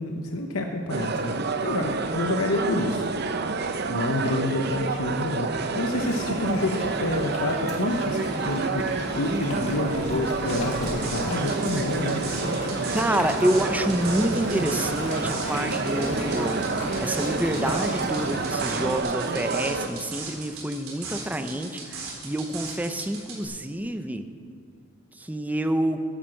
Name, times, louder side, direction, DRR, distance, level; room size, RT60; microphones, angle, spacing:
voice 1, 0.0-3.1 3.9-12.2, left 2 dB, 80° left, 3 dB, 0.9 m, -28 dB
sound 1, 0.9-19.9, right 3 dB, 50° right, 0.7 m, -29 dB
Rain, 5.9-19.0, left 1 dB, 35° left, 2.0 m, -35 dB
sound 2, 10.5-23.5, right 5 dB, 85° right, 3.8 m, -38 dB
voice 2, 12.9-24.3 25.2-26.0, right 1 dB, 5° right, 8 dB, 0.6 m, -28 dB
10.0 x 9.9 x 7.6 m, 2.2 s
head